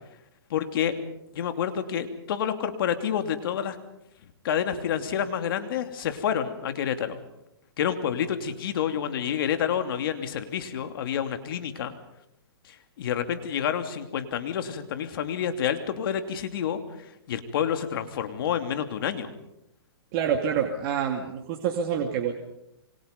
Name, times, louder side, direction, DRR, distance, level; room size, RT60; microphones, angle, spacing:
voice 1, 0.5-0.9 1.3-3.8 4.4-7.2 7.8-11.9 12.7-16.8 17.3-19.3, left 9 dB, 60° left, 7 dB, 2.8 m, -28 dB
voice 2, 20.1-22.3, right 7 dB, 40° right, 2 dB, 2.5 m, -27 dB
28.0 x 24.5 x 5.4 m, 0.82 s
hypercardioid pair, 140°, 14 cm